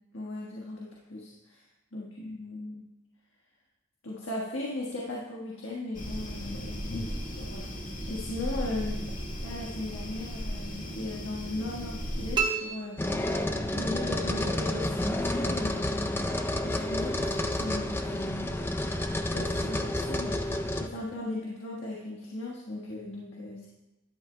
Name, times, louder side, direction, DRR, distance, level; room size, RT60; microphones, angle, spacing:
voice 1, 0.1-1.6 1.9-2.9 4.0-7.0 7.3-7.7 8.1-13.3 13.7-16.3 16.6-18.5 19.3-23.7, left 2 dB, 85° left, -3 dB, 1.5 m, -38 dB
sound 1, 5.9-12.4, equal, 40° left, 1.6 m, -36 dB
sound 2, 12.3-13.9, right 6 dB, 25° right, 1.0 m, -32 dB
sound 3, 13.0-20.9, left 1 dB, 10° left, 0.5 m, -30 dB
13.0 x 11.0 x 2.2 m, 1.0 s
head